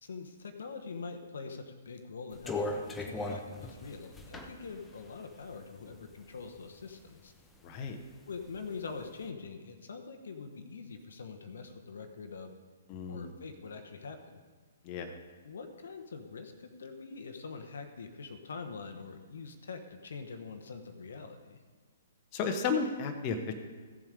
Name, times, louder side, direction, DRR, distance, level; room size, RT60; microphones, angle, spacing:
voice 1, 0.0-7.3 8.3-12.5 13.1-14.4 15.4-21.6, left 4 dB, 65° left, 6 dB, 1.1 m, -44 dB
sound 1, 2.3-6.3 6.8-7.7 8.1-9.1, left 2 dB, 10° left, 1.1 m, -38 dB
voice 2, 7.6-8.0 12.9-13.3 14.8-15.2 22.3-23.5, left 5 dB, 35° left, 5 dB, 1.1 m, -33 dB
15.0 x 7.5 x 5.0 m, 1.5 s
figure-of-eight pair, 120°, 0 cm